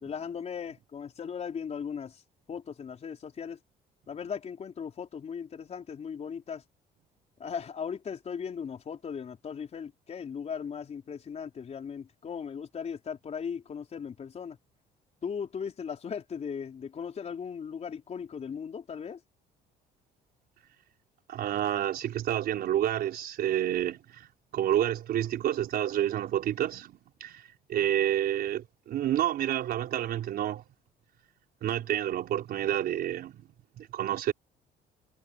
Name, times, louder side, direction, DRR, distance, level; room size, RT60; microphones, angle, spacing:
voice 1, 0.0-2.2 2.5-3.6 4.1-6.6 7.4-14.6 15.2-19.2, left 7 dB, 40° left, 4.6 m, -38 dB
voice 2, 21.3-24.3 24.5-27.4 27.7-30.6 31.6-33.5 33.8-34.3, right 11 dB, 65° right, 4.8 m, -29 dB
cardioid pair, 110°, 17 cm